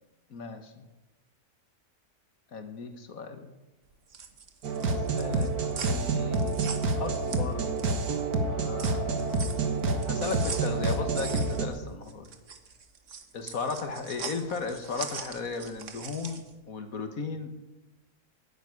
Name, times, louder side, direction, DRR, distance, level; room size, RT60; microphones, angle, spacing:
voice 1, 0.3-0.8 2.5-3.5 4.9-5.5 5.8-6.6 7.0-7.7 8.4-9.4 10.1-12.3 13.3-16.4 16.7-17.5, left 4 dB, 65° left, 7 dB, 1.7 m, -36 dB
sound 1, 3.9-8.0 8.4-16.5, right 5 dB, 55° right, 1.6 m, -42 dB
sound 2, 4.6-11.7, right 3 dB, 75° right, 2.0 m, -28 dB
11.0 x 9.8 x 9.4 m, 1.0 s
omnidirectional pair, 1.6 m